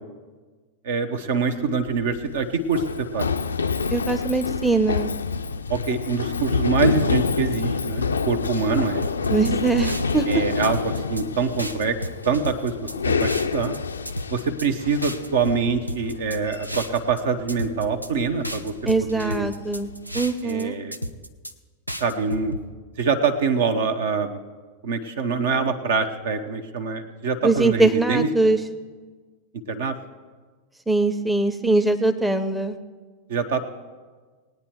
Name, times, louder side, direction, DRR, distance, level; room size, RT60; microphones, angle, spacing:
voice 1, 0.8-3.3 5.7-9.1 10.3-12.0 12.2-12.8 13.0-13.8 14.3-18.7 19.0-19.5 20.4-21.0 22.0-22.5 23.0-24.4 24.8-28.5 29.7-30.0 33.3-33.6, right 5 dB, 60° right, 8 dB, 1.0 m, -25 dB
Run, 1.7-20.3, left 5 dB, 75° left, 0.4 m, -28 dB
voice 2, 3.9-5.1 9.3-10.3 18.9-19.9 20.1-20.8 27.4-28.6 30.9-32.8, right 3 dB, 5° right, 7 dB, 0.7 m, -22 dB
sound 1, 9.0-10.3 10.6-11.2 11.6-13.8 14.1-14.7 15.0-17.2 17.5-18.1 18.4-20.6 20.9-21.5 21.9-22.6, equal, 85° right, 0.6 m, -33 dB
19.5 x 9.3 x 4.5 m, 1.4 s
figure-of-eight pair, 90°, 0 cm